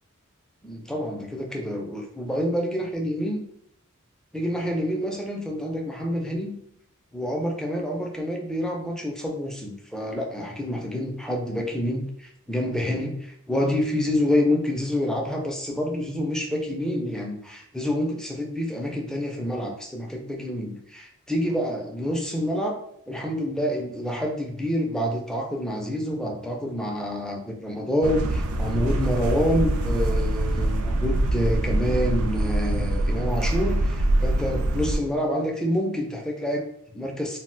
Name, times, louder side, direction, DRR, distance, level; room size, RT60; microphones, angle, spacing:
voice 1, 0.6-3.4 4.3-6.6 7.1-22.8 23.1-37.4, equal, 5° left, 1 dB, 0.3 m, -27 dB
sound 1, 28.0-35.0, right 1 dB, 85° right, 0.4 m, -24 dB
2.4 x 2.1 x 3.8 m, 0.73 s
head